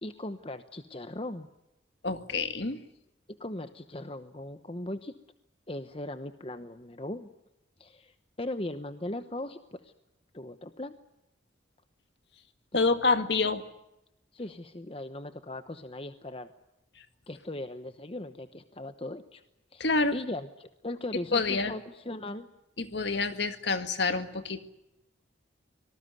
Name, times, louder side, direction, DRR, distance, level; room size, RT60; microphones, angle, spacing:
voice 1, 0.0-1.5 3.3-5.1 5.7-7.3 7.8-9.9 10.3-10.9 12.7-12.9 14.3-16.5 17.3-19.4 19.7-19.9 20.1-22.5, left 1 dB, 30° left, 10 dB, 1.0 m, -39 dB
voice 2, 2.0-2.8 12.7-13.6 19.8-20.2 21.3-21.7 22.8-24.6, left 3 dB, 60° left, 9 dB, 1.9 m, -27 dB
25.5 x 19.5 x 9.3 m, 0.88 s
head